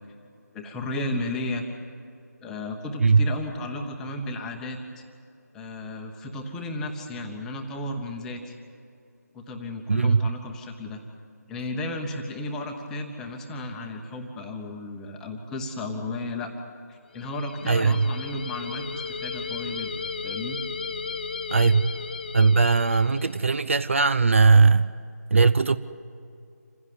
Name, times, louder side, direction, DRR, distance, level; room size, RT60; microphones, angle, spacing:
voice 1, 0.5-1.7 2.4-5.0 5.5-8.6 9.3-11.0 11.5-16.5 16.9-20.6, left 2 dB, 5° left, 2 dB, 1.0 m, -34 dB
voice 2, 9.9-10.2 17.7-18.1 21.5-22.0 22.3-24.9 25.3-25.8, right 4 dB, 45° right, 13 dB, 0.6 m, -19 dB
sound 1, 17.1-23.5, left 5 dB, 30° left, 0.8 m, -35 dB
27.0 x 16.0 x 9.5 m, 2.5 s
figure-of-eight pair, 160°, 9 cm